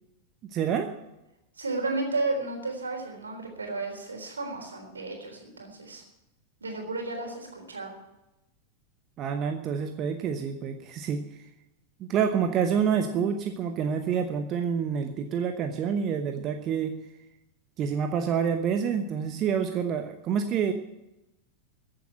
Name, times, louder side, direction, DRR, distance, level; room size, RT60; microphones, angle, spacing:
voice 1, 0.5-0.9 9.2-11.4 12.0-16.9 17.8-20.7, right 7 dB, 35° right, 6 dB, 1.0 m, -27 dB
voice 2, 1.6-6.0 6.6-7.9, right 3 dB, 75° right, 3 dB, 3.7 m, -33 dB
15.0 x 7.8 x 8.8 m, 0.94 s
figure-of-eight pair, 90°, 0 cm